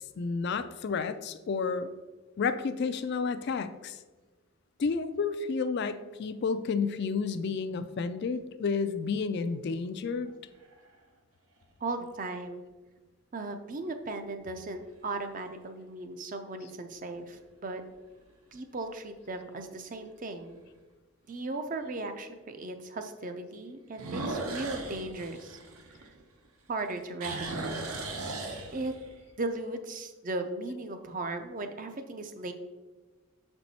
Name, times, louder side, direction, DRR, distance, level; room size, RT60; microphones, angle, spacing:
voice 1, 0.0-1.9 2.4-4.0 4.8-10.3, left 5 dB, 50° left, 10 dB, 0.3 m, -31 dB
sound 1, 10.3-10.9 11.6-11.7 16.9-17.4 17.9-18.0 18.5-18.6 18.9-19.0 20.5-20.6 23.9-26.5 26.8-29.2, right 2 dB, 80° right, 1.0 m, -37 dB
voice 2, 11.8-12.6 13.3-17.8 18.5-20.6 21.3-25.6 26.0-26.1 26.7-28.0 28.7-29.0 29.4-32.5, right 2 dB, 35° right, 7 dB, 0.5 m, -37 dB
6.7 x 4.4 x 4.1 m, 1.3 s
head